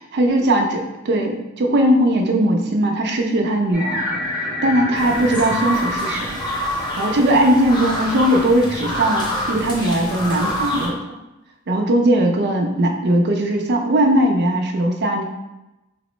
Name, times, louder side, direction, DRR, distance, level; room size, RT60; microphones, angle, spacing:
voice 1, 0.0-4.1 4.6-6.4 7.0-11.0 11.7-15.2, right 1 dB, 50° right, 3 dB, 0.4 m, -19 dB
sound 1, 3.7-8.9, left 1 dB, 5° right, 0.8 m, -30 dB
sound 2, 4.9-10.9, equal, 20° left, 0.5 m, -26 dB
4.1 x 2.0 x 3.0 m, 0.98 s
head